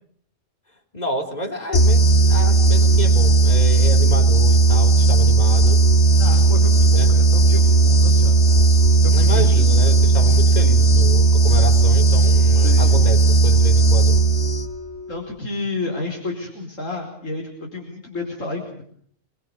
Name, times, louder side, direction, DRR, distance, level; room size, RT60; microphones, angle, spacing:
voice 1, 0.9-5.8 6.9-7.1 9.1-14.2, equal, 30° left, 5 dB, 3.6 m, -30 dB
sound 1, 1.7-14.9, right 3 dB, 55° left, 1.5 m, -15 dB
voice 2, 6.2-8.4 9.0-9.7 12.5-13.0 15.1-18.8, left 2 dB, 80° left, 1 dB, 5.3 m, -30 dB
29.0 x 22.0 x 6.9 m, 0.62 s
omnidirectional pair, 1.3 m